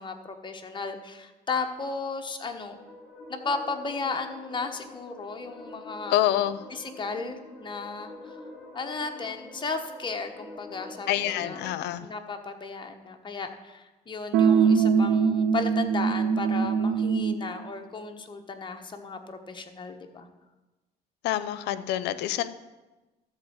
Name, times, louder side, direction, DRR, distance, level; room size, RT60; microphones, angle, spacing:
voice 1, 0.0-2.8 3.3-6.3 6.7-8.4 8.7-11.6 12.0-20.3, left 4 dB, 30° left, 5 dB, 1.2 m, -35 dB
sound 1, 2.4-11.8, left 1 dB, ahead, 2.8 m, -46 dB
voice 2, 6.1-6.6 11.1-12.1 21.2-22.5, left 12 dB, 85° left, 15 dB, 0.6 m, -26 dB
sound 2, 14.3-17.5, right 6 dB, 85° right, 0.7 m, -22 dB
13.0 x 4.5 x 8.0 m, 1.1 s
cardioid pair, 110°, 17 cm